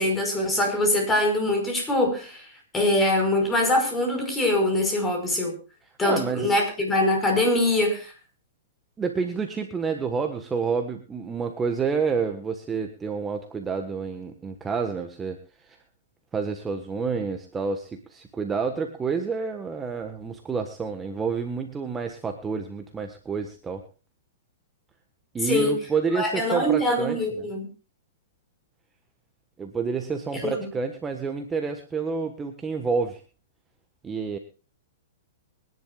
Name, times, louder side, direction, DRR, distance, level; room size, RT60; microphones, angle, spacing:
voice 1, 0.0-2.5 2.7-5.6 6.0-8.1 25.4-25.7 26.1-27.7 30.3-30.6, left 1 dB, 15° left, 4 dB, 5.3 m, -23 dB
voice 2, 6.0-6.6 9.0-15.8 16.3-23.8 25.3-27.5 29.6-33.2 34.0-34.4, right 5 dB, 15° right, 5 dB, 1.4 m, -29 dB
24.0 x 11.0 x 2.4 m, 0.33 s
hypercardioid pair, 130°, 0 cm